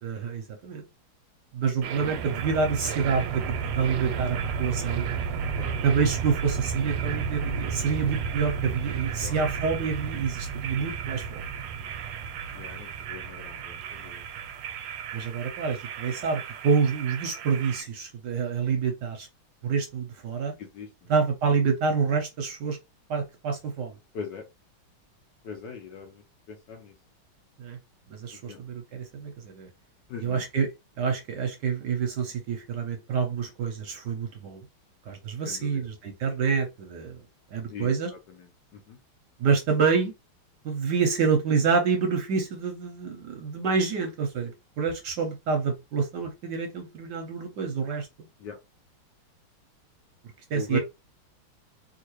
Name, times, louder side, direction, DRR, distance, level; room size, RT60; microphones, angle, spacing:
voice 1, 0.0-0.8 1.5-5.1 5.8-11.4 15.1-19.3 19.6-20.5 21.1-22.8 23.1-24.0 27.6-27.8 28.1-29.7 30.2-30.7 31.0-34.6 35.1-37.2 37.5-38.1 39.4-40.1 40.6-48.1 50.5-50.8, right 5 dB, 65° right, 1.1 m, -27 dB
sound 1, 1.8-17.8, right 7 dB, 85° right, 1.4 m, -33 dB
voice 2, 12.5-14.2 20.6-21.1 24.1-24.4 25.4-26.2 26.5-26.9 28.5-28.6 30.1-30.4 35.5-35.9 37.7-37.9 38.7-39.0 48.4-48.6 50.5-50.8, left 5 dB, 70° left, 1.2 m, -40 dB
3.7 x 2.6 x 3.0 m
omnidirectional pair, 2.3 m